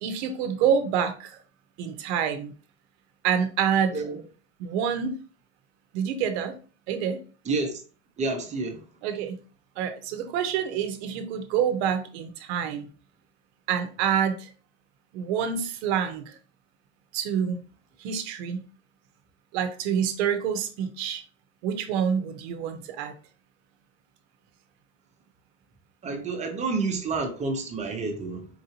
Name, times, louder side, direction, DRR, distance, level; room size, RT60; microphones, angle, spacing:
voice 1, 0.0-1.4 1.8-2.5 3.2-4.0 4.6-5.2 5.9-6.5 6.9-7.2 9.0-9.4 9.8-12.9 13.7-14.5 15.1-16.4 17.1-17.6 18.0-18.6 19.5-21.2 21.6-23.1, right 8 dB, 60° right, 0.8 m, -27 dB
voice 2, 8.2-8.8 26.0-28.5, right 3 dB, 20° right, 0.8 m, -29 dB
4.6 x 2.6 x 2.9 m
supercardioid pair, 135°, 36 cm